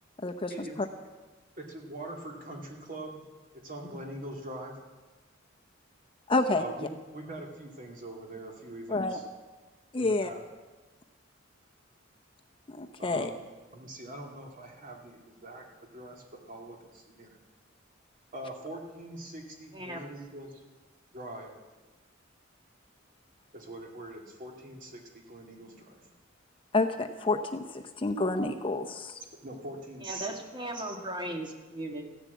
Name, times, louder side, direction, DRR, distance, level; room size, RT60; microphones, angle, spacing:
voice 1, 1.6-3.3 3.6-4.7 6.6-9.2 10.0-10.4 13.0-13.4 13.7-17.4 18.3-20.6 21.1-21.5 23.5-26.1 29.4-30.6, right 1 dB, 45° right, 1 dB, 2.5 m, -43 dB
voice 2, 6.3-6.6 8.9-9.2 9.9-10.3 12.7-13.3 26.7-29.2, left 2 dB, 25° left, 5 dB, 0.7 m, -29 dB
voice 3, 19.7-20.1 30.0-32.1, right 1 dB, 25° right, 2 dB, 1.9 m, -37 dB
14.5 x 10.5 x 8.4 m, 1.3 s
head